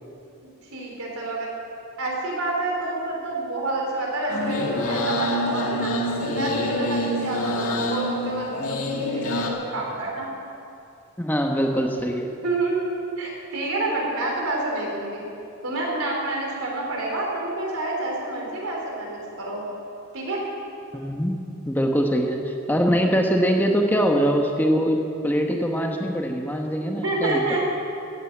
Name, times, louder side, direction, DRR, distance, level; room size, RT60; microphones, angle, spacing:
voice 1, 0.7-1.5 2.0-5.9 6.2-8.5 9.1-10.3 12.4-15.3 15.6-19.6 20.1-20.4 26.9-27.7, right 2 dB, 80° right, -2 dB, 3.7 m, -28 dB
sound 1, 4.3-9.5, left 1 dB, 85° left, 1.8 m, -26 dB
voice 2, 11.2-12.3 20.9-21.4 21.7-27.4, equal, 10° left, 2 dB, 1.0 m, -23 dB
14.5 x 9.4 x 7.8 m, 2.7 s
head